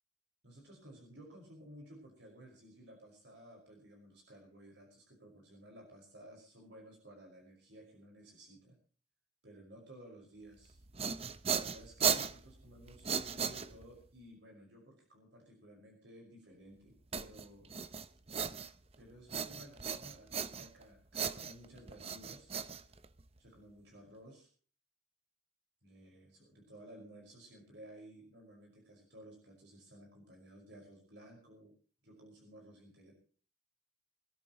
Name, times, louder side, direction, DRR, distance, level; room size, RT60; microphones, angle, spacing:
voice 1, 0.4-8.8 9.4-10.8 11.5-17.8 19.0-22.5 23.4-24.5 25.8-31.7 32.0-33.1, right 1 dB, 65° right, 0 dB, 5.5 m, -56 dB
sound 1, 10.7-14.1 17.1-19.0 19.3-20.8 21.1-23.4, right 7 dB, 30° right, 0.8 m, -37 dB
24.5 x 14.0 x 3.1 m, 0.41 s
head